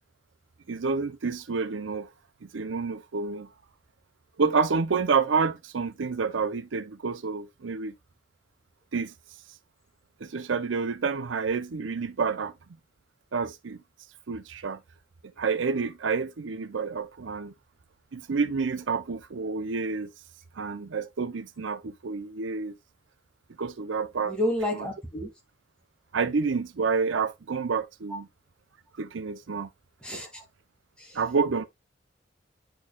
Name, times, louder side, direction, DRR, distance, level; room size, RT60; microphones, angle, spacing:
voice 1, 0.7-2.1 2.4-3.5 4.4-7.9 8.9-9.1 10.2-12.5 13.3-13.8 14.3-14.8 15.4-17.5 18.1-20.1 20.6-22.8 23.6-24.4 26.1-28.3 29.0-29.7 31.1-31.6, right 5 dB, 85° right, 0.6 m, -28 dB
voice 2, 24.3-25.3 28.1-28.2 30.0-30.4 31.0-31.2, left 1 dB, 5° left, 2.3 m, -30 dB
9.8 x 4.5 x 2.3 m
head